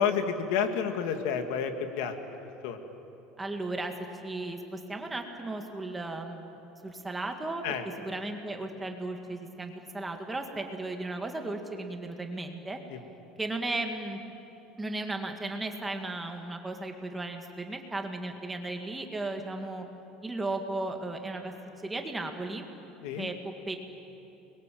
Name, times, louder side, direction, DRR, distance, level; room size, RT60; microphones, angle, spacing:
voice 1, 0.0-2.1 2.6-2.8 7.6-7.8 12.9-13.0 23.0-23.3, left 7 dB, 75° left, 6 dB, 2.1 m, -29 dB
voice 2, 3.4-3.9 4.2-7.6 8.0-12.8 13.4-14.2 14.8-19.9 20.2-21.5 21.8-22.7 23.2-23.8, right 2 dB, 10° right, 4 dB, 2.0 m, -35 dB
29.5 x 22.0 x 7.7 m, 2.9 s
cardioid pair, 155°, 0 cm